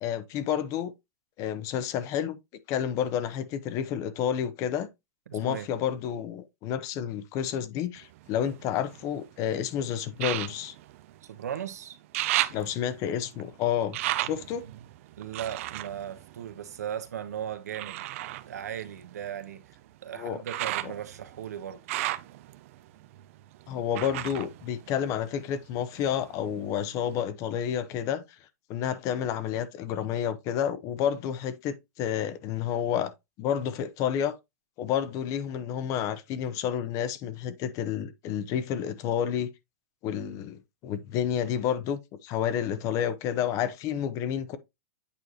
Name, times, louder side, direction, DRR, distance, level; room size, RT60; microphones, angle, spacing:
voice 1, 0.0-0.9 1.4-2.4 2.7-4.9 5.3-10.7 12.5-14.6 20.1-20.4 23.7-28.2 28.7-33.1 33.4-34.4 34.8-39.5 40.0-44.6, left 9 dB, 40° left, 0.9 m, -30 dB
voice 2, 5.3-5.7 11.2-12.0 14.2-14.3 14.6-14.7 15.2-18.0 18.5-19.6 20.0-21.8, right 9 dB, 85° right, 1.3 m, -37 dB
sound 1, 8.0-9.3 10.1-11.7 11.9-17.1 17.7-25.6 25.9-26.7 27.2-27.3, right 16 dB, 60° right, 0.6 m, -35 dB
8.5 x 4.8 x 2.8 m
hypercardioid pair, 135°, 8 cm